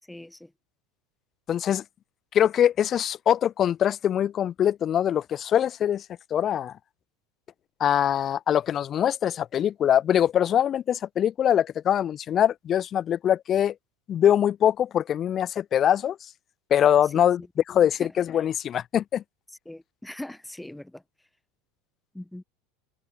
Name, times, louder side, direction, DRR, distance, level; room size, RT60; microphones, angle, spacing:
voice 1, 0.1-0.5 18.0-18.1 19.7-21.0 22.1-22.4, left 1 dB, 5° left, 2.7 m, -40 dB
voice 2, 1.5-1.8 2.3-6.1 6.3-6.8 7.8-13.8 14.1-16.3 16.7-19.2, left 10 dB, 40° left, 0.4 m, -23 dB
hypercardioid pair, 80°, 0 cm